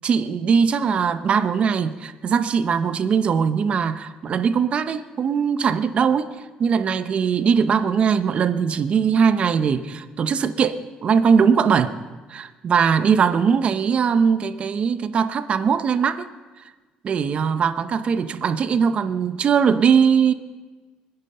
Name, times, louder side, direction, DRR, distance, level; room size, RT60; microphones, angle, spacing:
voice 1, 0.0-11.9 12.3-16.3 17.0-20.3, right 6 dB, 40° right, 11 dB, 0.8 m, -20 dB
24.5 x 9.9 x 5.5 m, 1.3 s
cardioid pair, 120°, 3 cm